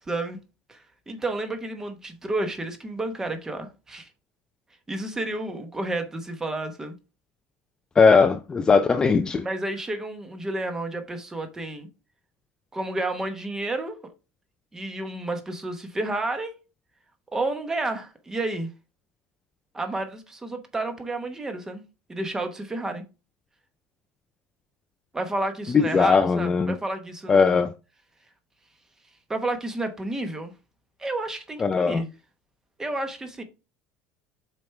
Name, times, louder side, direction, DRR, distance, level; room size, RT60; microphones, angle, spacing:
voice 1, 0.1-0.4 0.7-0.8 1.1-4.1 4.9-6.9 9.4-11.9 12.7-14.0 14.7-16.5 17.3-18.7 19.7-21.8 22.1-23.0 25.1-27.6 29.3-30.5 31.0-32.1 32.8-33.4, right 2 dB, 10° right, 1.0 m, -31 dB
voice 2, 8.0-9.5 25.7-26.7 27.3-27.7 31.6-32.0, left 5 dB, 15° left, 0.4 m, -19 dB
6.9 x 4.5 x 3.3 m
cardioid pair, 150°, 4 cm